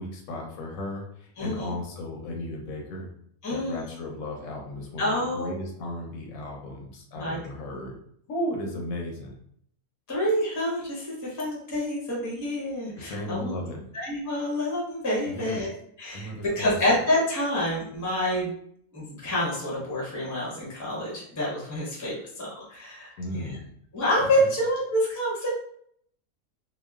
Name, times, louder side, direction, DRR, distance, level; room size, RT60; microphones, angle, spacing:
voice 1, 0.0-3.1 3.5-8.0 8.3-9.4 13.0-13.9 15.3-15.7 16.1-17.0 23.2-23.7 24.2-24.5, left 1 dB, 75° left, 0 dB, 1.0 m, -35 dB
voice 2, 1.4-1.7 3.4-3.8 5.0-5.5 7.1-7.4 10.1-13.5 13.9-15.7 16.0-18.5 18.9-23.6 23.9-25.5, left 1 dB, 20° left, -5 dB, 0.5 m, -27 dB
2.9 x 2.0 x 2.2 m, 0.66 s
omnidirectional pair, 1.5 m